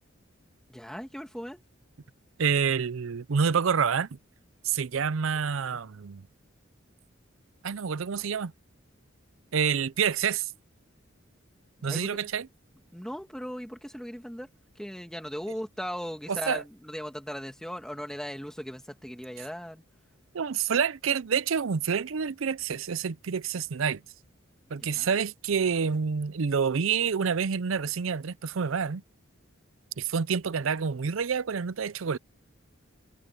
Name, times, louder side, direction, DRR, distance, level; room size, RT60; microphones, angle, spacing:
voice 1, 0.7-1.6 11.8-12.3 12.9-14.5 14.8-19.8 24.7-25.2, equal, 5° left, 2.5 m, -38 dB
voice 2, 2.4-4.2 4.6-6.2 7.6-8.5 9.5-10.5 11.8-12.5 16.3-16.6 20.3-24.0 24.7-29.0 30.0-32.2, right 6 dB, 75° right, 0.5 m, -28 dB
head